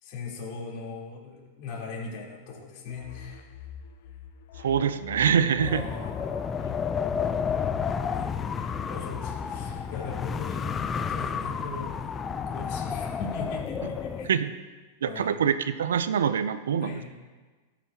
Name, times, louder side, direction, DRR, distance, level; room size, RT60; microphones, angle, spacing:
voice 1, 0.0-3.6 5.6-6.5 8.2-8.6 8.9-12.1 12.4-14.3 15.1-15.4 16.8-17.1, left 4 dB, 50° left, -4 dB, 3.6 m, -39 dB
sound 1, 2.9-10.2, left 8 dB, 70° left, 0.7 m, -45 dB
voice 2, 4.6-5.8 14.2-14.5 15.0-17.0, right 7 dB, 85° right, 12 dB, 0.5 m, -25 dB
Wind, 5.6-14.3, left 6 dB, 25° left, 0.5 m, -31 dB
14.0 x 8.3 x 2.9 m, 1.3 s
hypercardioid pair, 115°, 0 cm